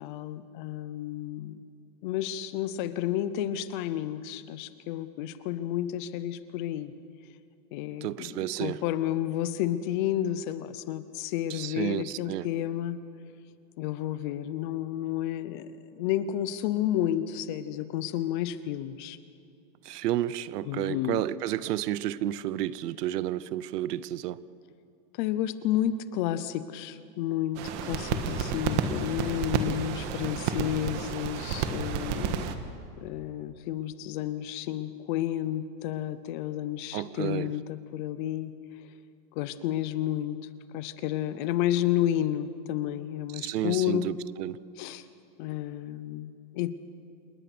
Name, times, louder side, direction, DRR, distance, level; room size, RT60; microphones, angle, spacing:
voice 1, 0.0-1.6 2.0-6.9 7.7-13.0 13.8-19.2 20.6-21.2 25.2-32.5 33.0-38.6 39.3-44.1 44.8-45.0 45.4-46.7, left 12 dB, 30° left, 14 dB, 0.7 m, -31 dB
voice 2, 8.0-8.8 11.5-12.5 19.8-24.4 36.9-37.5 43.4-44.6, right 13 dB, 75° right, 18 dB, 0.9 m, -31 dB
sound 1, 27.6-32.5, right 6 dB, 45° right, 1.7 m, -31 dB
28.5 x 19.5 x 6.1 m, 2.6 s
supercardioid pair, 165°, 48 cm